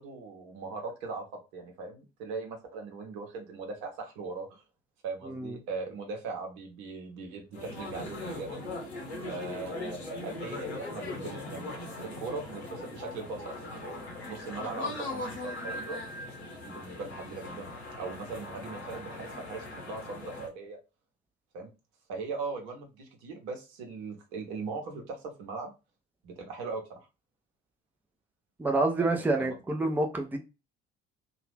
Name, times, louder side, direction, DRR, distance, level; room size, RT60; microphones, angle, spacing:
voice 1, 0.0-4.6 5.0-8.7 9.2-16.0 16.6-17.7 18.0-20.8 21.5-21.7 22.1-25.7 26.2-27.0 29.0-29.5, right 4 dB, 60° right, 0.9 m, -40 dB
sound 1, 7.5-20.5, left 2 dB, 85° left, 0.8 m, -40 dB
voice 2, 28.6-30.4, right 2 dB, 5° right, 0.6 m, -28 dB
2.8 x 2.3 x 3.2 m
figure-of-eight pair, 50°, 31 cm